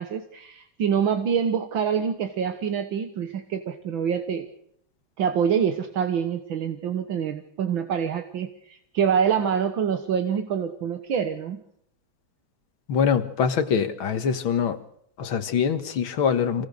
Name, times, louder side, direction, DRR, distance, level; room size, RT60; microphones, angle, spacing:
voice 1, 0.0-4.5 5.2-11.6, right 7 dB, 75° right, 7 dB, 2.1 m, -26 dB
voice 2, 12.9-14.8 15.2-16.7, left 7 dB, 85° left, 9 dB, 2.3 m, -24 dB
26.5 x 19.0 x 6.6 m, 0.71 s
omnidirectional pair, 2.2 m